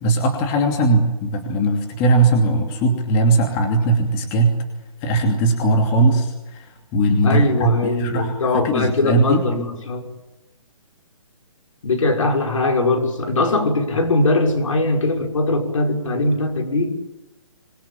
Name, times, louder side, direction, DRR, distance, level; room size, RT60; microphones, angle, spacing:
voice 1, 0.0-4.6 5.0-9.4, right 2 dB, 20° left, 3 dB, 2.7 m, -19 dB
voice 2, 7.2-10.1 11.8-16.9, left 2 dB, 65° left, 4 dB, 6.1 m, -20 dB
25.5 x 22.5 x 8.9 m, 0.99 s
hypercardioid pair, 165°, 18 cm